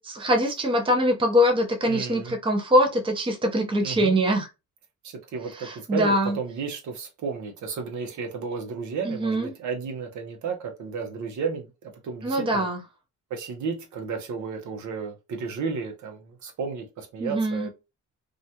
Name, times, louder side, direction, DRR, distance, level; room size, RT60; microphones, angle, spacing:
voice 1, 0.0-4.5 5.6-6.4 9.0-9.5 12.2-12.8 17.2-17.7, equal, 15° right, 0.6 m, -23 dB
voice 2, 1.9-2.4 3.8-4.1 5.0-12.7 13.3-17.7, right 5 dB, 70° right, 0.8 m, -33 dB
2.4 x 2.1 x 2.8 m
cardioid pair, 90°, 30 cm